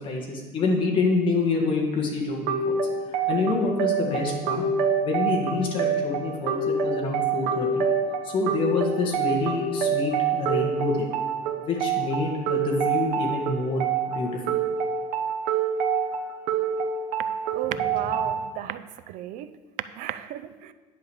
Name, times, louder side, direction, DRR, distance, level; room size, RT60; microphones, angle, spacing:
voice 1, 0.0-2.8 3.1-4.6 5.0-7.8 8.2-11.1 11.6-14.5, left 3 dB, 35° left, 0 dB, 1.8 m, -27 dB
sound 1, 2.5-18.5, right 5 dB, 85° right, 1.1 m, -26 dB
voice 2, 17.5-19.5 20.0-20.7, right 12 dB, 65° right, 13 dB, 0.5 m, -34 dB
10.5 x 5.0 x 7.1 m, 1.3 s
cardioid pair, 160°, 14 cm